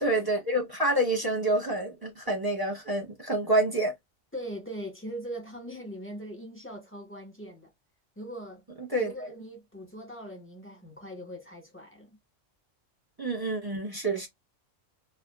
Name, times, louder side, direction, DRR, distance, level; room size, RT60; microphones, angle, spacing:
voice 1, 0.0-3.9 8.9-9.1 13.2-14.3, right 1 dB, 20° right, 0.7 m, -27 dB
voice 2, 4.3-7.7 8.2-8.6 9.0-12.2, equal, 10° left, 0.9 m, -41 dB
2.8 x 2.4 x 2.3 m
omnidirectional pair, 1.3 m